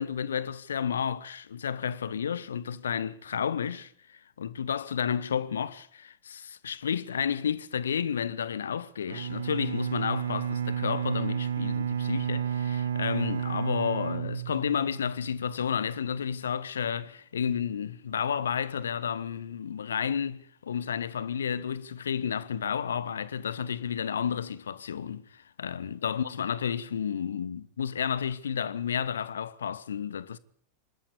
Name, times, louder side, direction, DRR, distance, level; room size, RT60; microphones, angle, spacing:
voice 1, 0.0-30.4, left 7 dB, 65° left, 1.1 m, -31 dB
Bowed string instrument, 9.1-15.1, right 8 dB, 65° right, 1.2 m, -31 dB
24.5 x 13.0 x 8.4 m
figure-of-eight pair, 90°, 0 cm